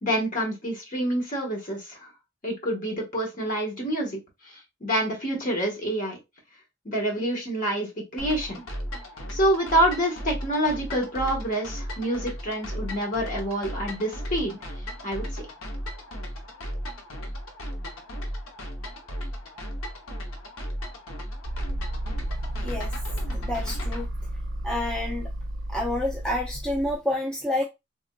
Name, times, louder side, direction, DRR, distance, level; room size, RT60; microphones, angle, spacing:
voice 1, 0.0-2.1 2.4-4.2 4.4-6.2 6.8-8.7 9.3-14.6 15.0-15.4, right 1 dB, 40° left, 0 dB, 1.3 m, -27 dB
sound 1, 8.2-24.0, equal, 85° left, 0.8 m, -35 dB
sound 2, 21.4-26.9, right 1 dB, 55° right, 0.6 m, -32 dB
voice 2, 22.6-22.9 23.3-24.1 24.6-25.3 25.7-27.6, left 1 dB, 5° left, -2 dB, 0.4 m, -28 dB
3.5 x 2.5 x 2.2 m, 0.22 s
head